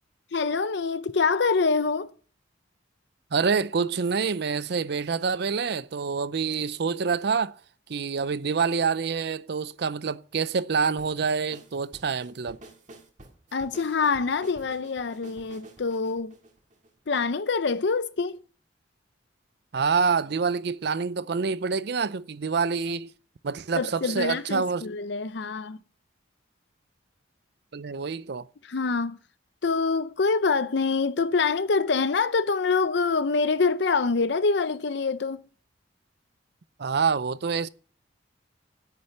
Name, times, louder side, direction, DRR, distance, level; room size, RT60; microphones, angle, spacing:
voice 1, 0.3-2.1 13.5-16.3 17.1-18.4 23.7-25.8 28.6-29.2 29.6-35.5, left 4 dB, 65° left, 0.6 m, -25 dB
voice 2, 3.3-7.6 7.9-12.6 19.7-23.1 23.4-24.8 27.7-28.5 36.8-37.7, right 5 dB, 60° right, 0.5 m, -27 dB
sound 1, 11.0-17.3, right 1 dB, 40° right, 1.9 m, -50 dB
9.8 x 9.7 x 5.7 m
head